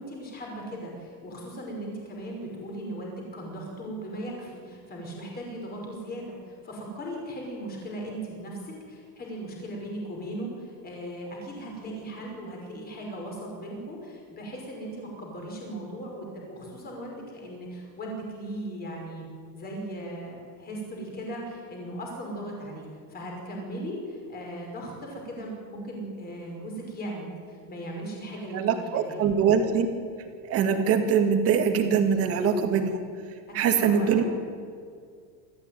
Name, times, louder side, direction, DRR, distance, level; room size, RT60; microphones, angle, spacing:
voice 1, 0.0-19.3 19.5-29.2 33.5-34.3, right 1 dB, 20° left, 0 dB, 5.6 m, -38 dB
voice 2, 28.5-29.9 30.5-33.0 33.5-34.2, right 7 dB, 30° right, 6 dB, 2.0 m, -23 dB
26.5 x 14.0 x 9.3 m, 2.2 s
supercardioid pair, 180°, 49 cm